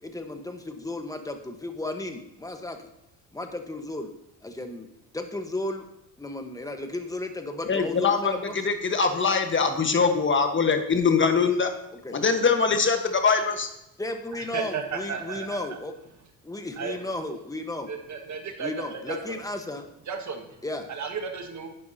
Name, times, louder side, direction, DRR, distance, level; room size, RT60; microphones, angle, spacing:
voice 1, 0.0-2.9 3.3-4.1 4.4-4.9 5.1-5.8 6.2-8.7 12.0-12.2 14.0-15.9 16.4-17.9 18.6-19.8 20.6-20.9, left 2 dB, 10° left, 6 dB, 1.2 m, -34 dB
voice 2, 7.7-8.3 8.6-11.7 12.1-13.7, left 5 dB, 30° left, 6 dB, 1.3 m, -22 dB
voice 3, 14.4-15.8 16.8-17.0 17.9-19.2 20.1-20.6 20.9-21.7, right 5 dB, 50° right, 4 dB, 1.7 m, -34 dB
11.0 x 9.2 x 2.8 m, 0.82 s
cardioid pair, 90°, 39 cm